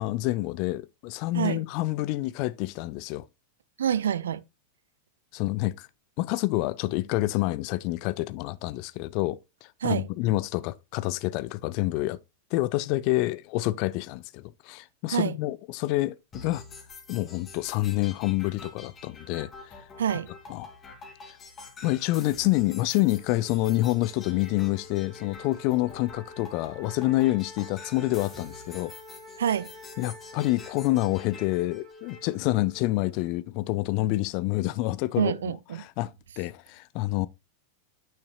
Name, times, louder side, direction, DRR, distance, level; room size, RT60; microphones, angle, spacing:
voice 1, 0.0-3.3 5.3-5.9 6.2-12.2 12.5-16.6 17.1-19.5 20.5-20.7 21.8-28.9 30.0-35.4 35.8-37.3, left 18 dB, 45° left, 0.5 m, -27 dB
voice 2, 3.8-4.4 9.8-10.1 15.1-15.4 20.0-20.3 29.4-29.7 35.2-35.8, right 8 dB, 65° right, 0.4 m, -27 dB
sound 1, 16.3-32.3, left 3 dB, 25° left, 2.5 m, -47 dB
Wind instrument woodwind instrument, 23.1-33.4, left 2 dB, 35° right, 1.5 m, -48 dB
9.1 x 5.7 x 2.3 m
figure-of-eight pair, 90°, 0 cm